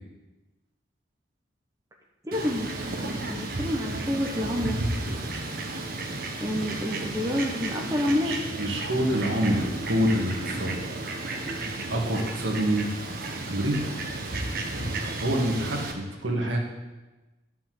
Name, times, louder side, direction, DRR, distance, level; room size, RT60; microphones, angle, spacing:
voice 1, 2.2-4.8 6.4-8.3, left 1 dB, 15° right, 0 dB, 1.2 m, -28 dB
Fowl, 2.3-15.9, right 2 dB, 50° right, 1.3 m, -33 dB
voice 2, 8.2-10.8 11.0-11.1 11.9-12.9 13.5-13.8 15.2-16.6, right 1 dB, 75° right, 0 dB, 2.0 m, -26 dB
11.5 x 5.8 x 7.8 m, 1.1 s
head